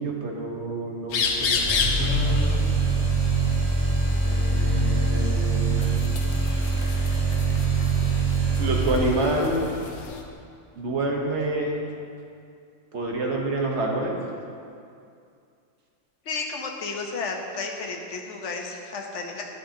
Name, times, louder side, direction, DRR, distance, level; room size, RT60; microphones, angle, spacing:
voice 1, 0.0-2.7 4.2-5.9 6.3-6.9 8.6-9.6 10.8-11.9 12.9-14.2, right 2 dB, 65° right, 0 dB, 1.2 m, -28 dB
sound 1, 1.1-10.2, left 5 dB, 90° left, 1.1 m, -32 dB
sound 2, 1.5-9.5, right 3 dB, 15° right, 1.9 m, -23 dB
voice 2, 16.3-19.4, left 4 dB, 70° left, 1 dB, 1.2 m, -32 dB
11.5 x 6.7 x 2.8 m, 2.4 s
omnidirectional pair, 1.3 m